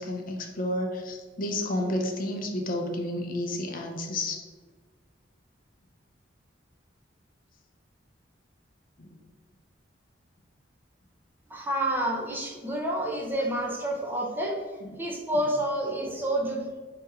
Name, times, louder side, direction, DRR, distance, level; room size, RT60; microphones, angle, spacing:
voice 1, 0.0-4.5 9.0-9.2 14.8-14.9, left 1 dB, 45° left, 2 dB, 0.5 m, -31 dB
voice 2, 11.5-14.6 15.0-16.7, right 1 dB, 10° right, -2 dB, 0.6 m, -29 dB
4.4 x 2.9 x 3.5 m, 1.4 s
head